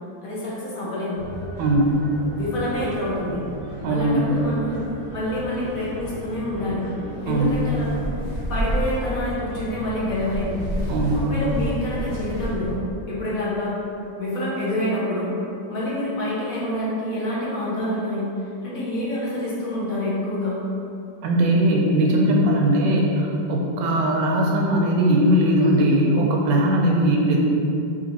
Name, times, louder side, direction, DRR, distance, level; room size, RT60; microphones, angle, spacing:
voice 1, 0.2-1.2 2.4-3.4 3.9-4.8 5.1-6.8 7.2-7.9 8.5-10.6 11.1-12.8 13.1-13.7 14.2-15.3 15.7-18.3 18.6-20.6, left 1 dB, 55° left, -7 dB, 1.2 m, -27 dB
sound 1, 1.1-12.8, equal, 20° left, 0.9 m, -31 dB
voice 2, 1.6-2.0 3.8-4.3 7.3-7.6 10.9-11.3 21.2-27.4, right 1 dB, 80° right, -1 dB, 1.2 m, -19 dB
3.8 x 2.9 x 4.0 m, 2.7 s
omnidirectional pair, 1.9 m